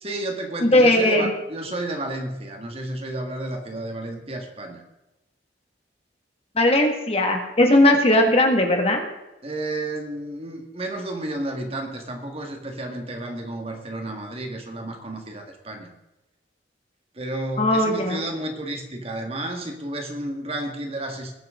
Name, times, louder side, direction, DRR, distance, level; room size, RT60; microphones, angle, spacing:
voice 1, 0.0-4.8 9.4-15.9 17.1-21.3, right 1 dB, 35° right, 3 dB, 1.9 m, -32 dB
voice 2, 0.6-1.3 6.6-9.0 17.6-18.2, left 1 dB, 35° left, 2 dB, 2.0 m, -18 dB
20.0 x 8.9 x 3.8 m, 0.99 s
head